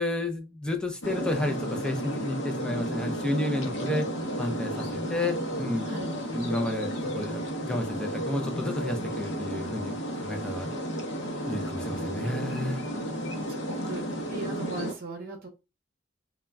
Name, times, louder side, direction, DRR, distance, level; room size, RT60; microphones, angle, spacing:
voice 1, 0.0-4.1 4.4-5.8 6.3-10.0 10.2-10.8 11.4-12.8, left 1 dB, 5° left, 3 dB, 0.4 m, -31 dB
sound 1, 1.0-14.9, equal, 70° left, 0.6 m, -33 dB
voice 2, 13.5-15.5, right 2 dB, 55° right, 2 dB, 0.7 m, -38 dB
2.2 x 2.1 x 3.3 m, 0.28 s
head